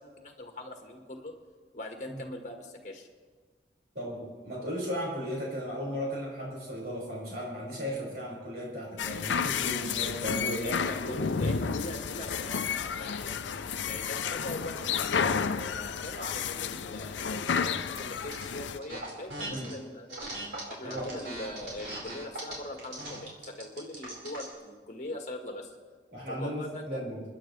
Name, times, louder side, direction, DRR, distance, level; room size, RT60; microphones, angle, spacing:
voice 1, 0.0-1.3 1.7-3.1 10.6-13.4 13.8-20.3 20.7-25.7 26.3-27.1, left 1 dB, 40° left, 3 dB, 1.6 m, -42 dB
voice 2, 3.9-11.6 19.4-19.7 20.8-21.1 26.1-27.2, equal, 60° right, -4 dB, 5.4 m, -36 dB
sound 1, 9.0-18.8, left 6 dB, 85° left, 0.6 m, -31 dB
sound 2, 17.9-18.4 18.8-19.7 20.1-24.5, right 1 dB, 90° right, 4.7 m, -39 dB
29.0 x 10.5 x 3.3 m, 1.5 s
head